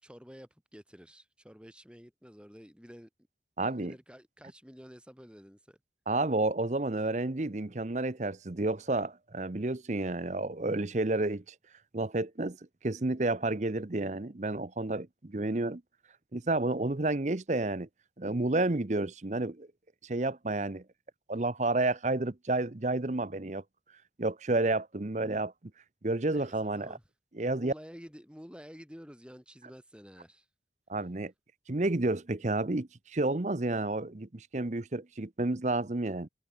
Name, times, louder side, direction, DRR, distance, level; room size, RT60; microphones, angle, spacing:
voice 1, 0.0-3.1 3.6-5.8 26.3-27.0 27.6-30.5, equal, 5° right, 5.5 m, -50 dB
voice 2, 3.6-3.9 6.1-11.4 11.9-12.6 12.8-15.8 16.3-17.9 18.2-19.7 20.0-20.8 21.3-23.6 24.2-25.5 26.0-26.9 27.4-27.7 30.9-31.3 31.7-36.3, right 2 dB, 40° right, 0.8 m, -30 dB
head